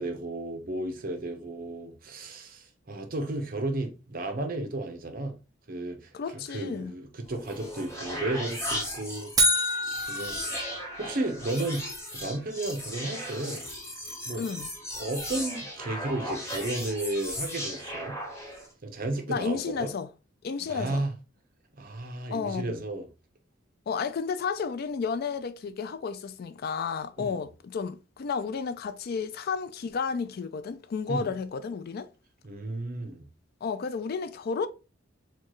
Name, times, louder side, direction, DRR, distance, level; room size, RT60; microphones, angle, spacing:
voice 1, 0.0-5.4 5.7-9.6 10.1-10.4 11.0-13.7 14.2-14.5 15.0-18.2 18.8-19.9 20.6-21.1 21.7-23.1 27.2-27.4 31.1-31.3 32.4-33.3, right 2 dB, 50° right, 0.8 m, -33 dB
voice 2, 6.1-6.9 14.3-14.7 19.3-20.1 20.4-21.0 22.3-22.8 23.9-32.1 33.6-34.7, left 5 dB, 55° left, 0.4 m, -32 dB
sound 1, 7.2-18.7, equal, 15° left, 1.0 m, -37 dB
sound 2, 9.4-11.5, right 1 dB, 20° right, 0.5 m, -27 dB
4.4 x 2.3 x 3.0 m
head